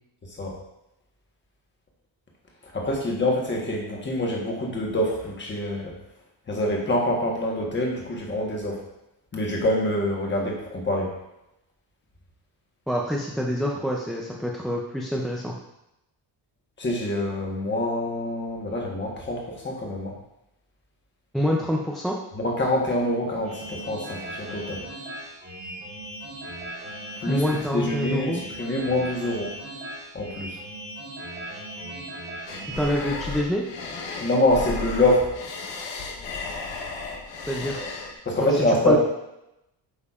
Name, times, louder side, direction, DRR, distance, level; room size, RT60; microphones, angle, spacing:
voice 1, 2.7-5.9 6.5-8.8 9.3-11.1 16.8-20.1 22.4-24.8 27.2-27.4 27.7-29.5 30.1-30.6 34.2-35.3 38.2-39.0, left 1 dB, 25° left, -1 dB, 1.2 m, -25 dB
voice 2, 12.9-15.6 21.3-22.2 27.3-28.4 32.8-33.6 37.5-37.8 38.4-39.0, equal, ahead, -2 dB, 0.3 m, -26 dB
sound 1, 23.4-32.9, right 1 dB, 25° right, 1.5 m, -38 dB
sound 2, 32.5-38.1, left 4 dB, 85° left, 1.1 m, -34 dB
8.2 x 5.3 x 2.4 m, 0.88 s
wide cardioid pair, 170°, 43 cm